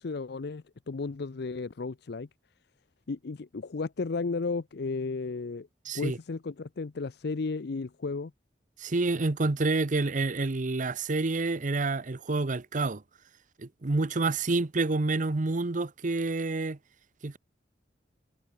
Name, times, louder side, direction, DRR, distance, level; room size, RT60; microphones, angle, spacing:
voice 1, 0.0-2.3 3.1-5.7 5.9-8.3, left 4 dB, 65° left, 0.6 m, -34 dB
voice 2, 5.9-6.2 8.8-13.0 13.6-16.8 17.2-17.4, right 3 dB, 45° right, 0.8 m, -28 dB
head